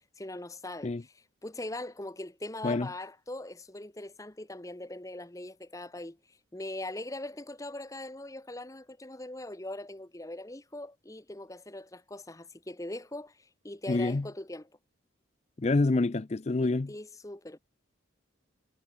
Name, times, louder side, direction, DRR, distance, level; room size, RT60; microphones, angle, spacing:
voice 1, 0.2-0.9 1.4-14.7 16.9-17.6, left 1 dB, 15° left, 1.0 m, -41 dB
voice 2, 13.9-14.3 15.6-16.9, left 3 dB, 30° left, 0.4 m, -27 dB
head